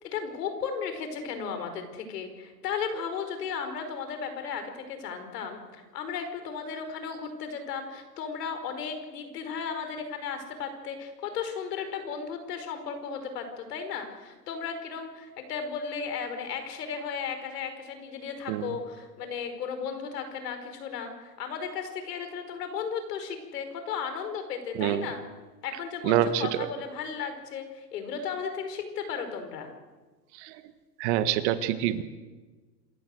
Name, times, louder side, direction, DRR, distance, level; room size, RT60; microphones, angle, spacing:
voice 1, 0.0-25.2 25.6-29.7, left 6 dB, 70° left, 8 dB, 4.9 m, -35 dB
voice 2, 26.0-26.7 30.4-30.6 31.0-32.0, right 12 dB, 40° right, 12 dB, 1.4 m, -26 dB
27.0 x 15.0 x 7.7 m, 1.3 s
hypercardioid pair, 145°, 50 cm